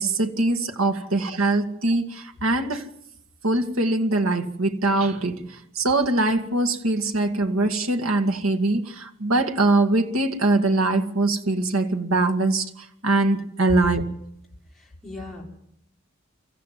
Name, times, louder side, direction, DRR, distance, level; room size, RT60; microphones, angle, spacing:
voice 1, 0.0-2.9 3.4-14.0, right 2 dB, 80° right, 5 dB, 2.1 m, -22 dB
voice 2, 14.7-15.4, left 2 dB, ahead, -5 dB, 5.8 m, -39 dB
25.5 x 15.0 x 7.6 m, 0.74 s
head